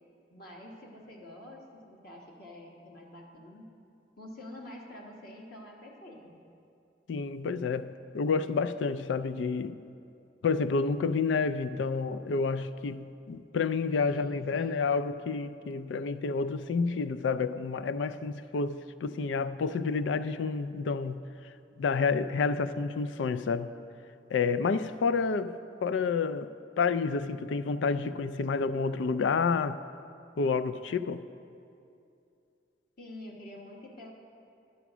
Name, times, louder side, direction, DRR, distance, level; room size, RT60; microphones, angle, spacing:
voice 1, 0.3-3.7 4.2-6.4 14.0-14.8 33.0-34.1, left 1 dB, 55° left, -1 dB, 1.3 m, -47 dB
voice 2, 7.1-9.8 10.4-21.2 21.8-23.7 24.3-25.5 25.8-26.5 26.8-29.8 30.4-31.2, left 4 dB, 75° left, 13 dB, 0.4 m, -29 dB
11.0 x 7.1 x 6.0 m, 2.6 s
head